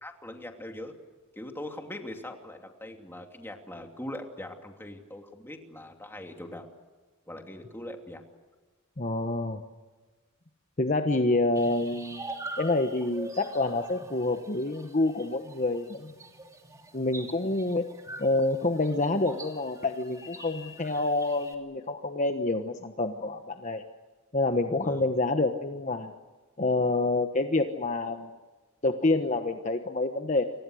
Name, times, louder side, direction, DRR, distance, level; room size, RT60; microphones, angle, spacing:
voice 1, 0.0-0.9 1.3-6.7 7.3-8.2 24.8-25.1, left 1 dB, 10° left, 3 dB, 2.9 m, -41 dB
voice 2, 9.0-9.6 10.8-12.3 12.6-16.1 16.9-17.8 18.2-23.8 24.3-26.1 26.6-28.4 28.8-30.4, left 2 dB, 35° left, 6 dB, 1.2 m, -27 dB
sound 1, 11.6-21.6, right 2 dB, 15° right, 2.8 m, -44 dB
29.5 x 24.5 x 6.5 m, 1.3 s
head